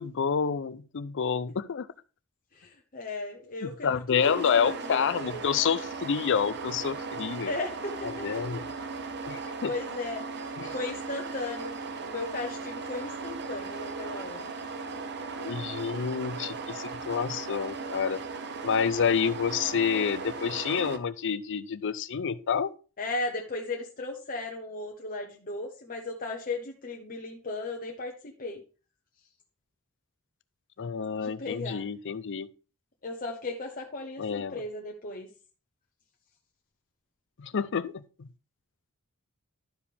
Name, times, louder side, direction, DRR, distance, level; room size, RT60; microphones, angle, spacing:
voice 1, 0.0-1.9 3.6-7.5 8.0-8.6 9.2-9.7 10.6-10.7 15.4-18.2 18.6-22.7 30.8-32.5 34.2-34.6 37.4-38.3, left 6 dB, 60° left, 0.5 m, -29 dB
voice 2, 2.5-5.6 7.4-8.3 9.3-10.3 10.7-14.5 23.0-28.6 31.1-31.8 33.0-35.3, left 2 dB, 40° left, 1.0 m, -36 dB
sound 1, 4.2-21.0, right 4 dB, 50° right, 0.7 m, -37 dB
12.0 x 4.8 x 3.5 m
head